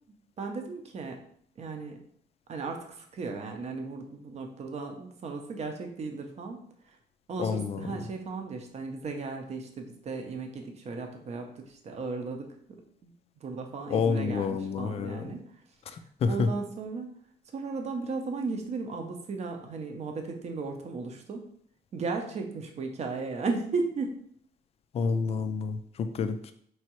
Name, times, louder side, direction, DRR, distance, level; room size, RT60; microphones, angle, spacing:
voice 1, 0.4-1.2 1.6-2.0 2.5-6.6 7.3-12.5 13.0-13.1 13.4-15.4 16.3-17.1 17.5-21.4 21.9-24.2, right 4 dB, 40° right, 4 dB, 0.6 m, -35 dB
voice 2, 7.4-7.9 13.9-15.4 15.9-16.5 24.9-26.5, left 5 dB, 35° left, 9 dB, 0.3 m, -29 dB
4.6 x 3.1 x 2.9 m, 0.63 s
cardioid pair, 160°, 17 cm